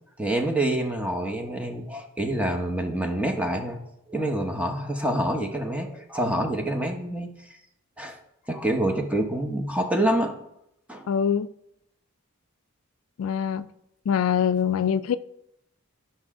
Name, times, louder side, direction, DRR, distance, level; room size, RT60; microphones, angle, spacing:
voice 1, 0.2-3.8 4.1-7.3 8.0-8.2 8.5-10.3 10.9-11.1, right 1 dB, 5° right, 0.9 m, -26 dB
voice 2, 11.1-11.5 13.2-13.7 14.1-15.2, left 8 dB, 75° left, 0.3 m, -23 dB
12.0 x 5.6 x 3.6 m
head